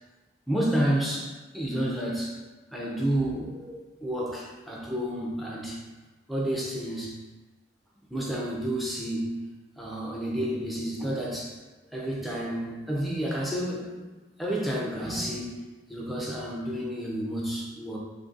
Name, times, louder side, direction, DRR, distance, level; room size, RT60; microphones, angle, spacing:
voice 1, 0.5-2.4 2.7-5.8 6.3-7.2 8.1-9.4 9.8-11.5 11.9-14.1 14.4-15.6 15.9-18.0, right 1 dB, ahead, -3 dB, 0.5 m, -30 dB
2.7 x 2.7 x 3.8 m, 1.2 s
head